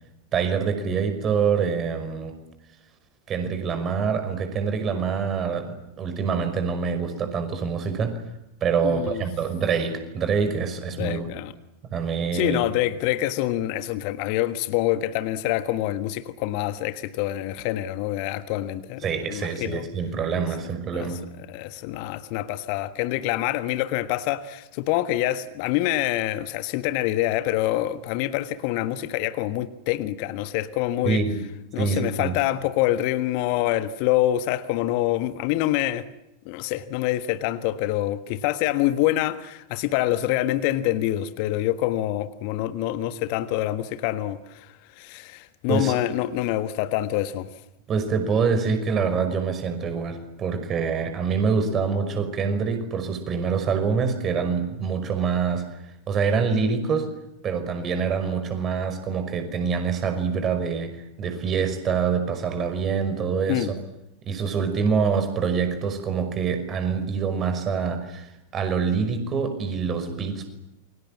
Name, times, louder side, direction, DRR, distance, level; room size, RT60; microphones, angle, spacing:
voice 1, 0.3-2.3 3.3-8.1 8.6-11.2 11.9-12.6 19.0-21.2 31.0-31.3 31.8-32.3 45.7-45.9 47.9-55.6 56.1-57.1 57.4-60.9 61.2-63.7 64.2-70.5, right 6 dB, 25° right, 5.5 m, -25 dB
voice 2, 8.8-9.2 11.0-11.5 12.3-19.8 20.9-21.1 21.5-31.2 31.7-36.1 36.4-47.5 63.5-63.7, left 14 dB, 45° left, 1.4 m, -26 dB
29.0 x 24.0 x 7.5 m
figure-of-eight pair, 90°, 0 cm